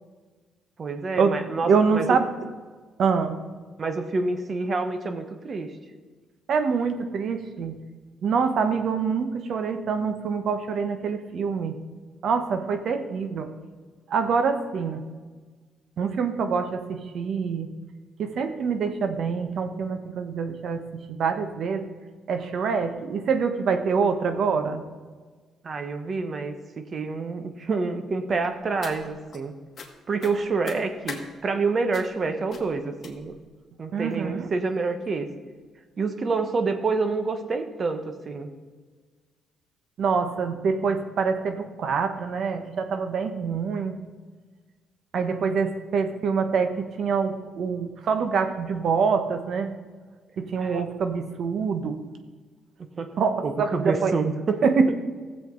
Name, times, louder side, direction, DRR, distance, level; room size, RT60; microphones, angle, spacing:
voice 1, 0.8-2.1 3.8-5.7 25.6-29.5 30.1-33.3 33.8-35.3 36.0-38.5 50.6-50.9 53.0-53.1 53.4-54.9, right 4 dB, 45° right, 7 dB, 1.1 m, -28 dB
voice 2, 1.6-2.3 3.0-3.4 6.5-7.8 8.2-11.8 12.2-13.5 14.1-15.0 16.0-17.7 18.2-21.8 22.3-24.8 33.9-34.5 40.0-44.0 45.1-49.7 50.4-52.0 53.2-54.1 54.6-54.9, right 5 dB, 65° right, 8 dB, 1.1 m, -25 dB
sound 1, 28.4-29.4 29.7-29.9 30.2-31.2 31.9-32.2 32.5-32.7 33.0-33.4 34.1-34.2 34.6-34.8 35.1-35.2, left 5 dB, 50° left, 1.7 m, -40 dB
15.5 x 7.6 x 3.9 m, 1.4 s
cardioid pair, 90°, 0 cm